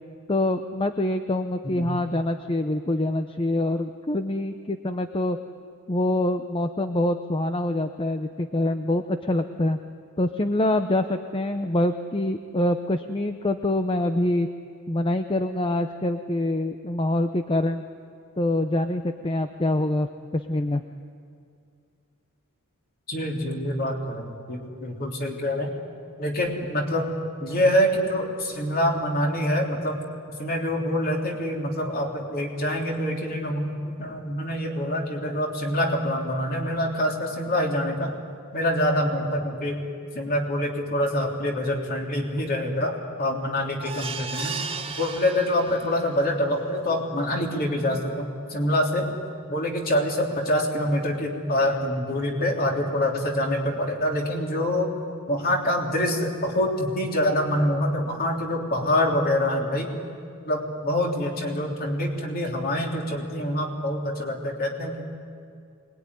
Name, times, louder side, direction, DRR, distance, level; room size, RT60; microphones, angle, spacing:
voice 1, 0.3-5.4 5.9-9.8 10.2-14.5 14.9-17.8 18.4-20.8, left 1 dB, 25° left, 8 dB, 0.7 m, -25 dB
voice 2, 23.1-25.7 26.2-27.1 27.4-30.0 30.4-38.2 38.5-39.8 40.1-44.6 45.0-49.0 49.5-54.9 55.3-60.0 60.4-65.0, left 1 dB, 45° left, 0 dB, 3.4 m, -25 dB
sound 1, 43.8-46.1 46.5-46.6 47.0-47.1, right 4 dB, 25° right, 1.6 m, -34 dB
24.5 x 20.5 x 9.9 m, 2.3 s
head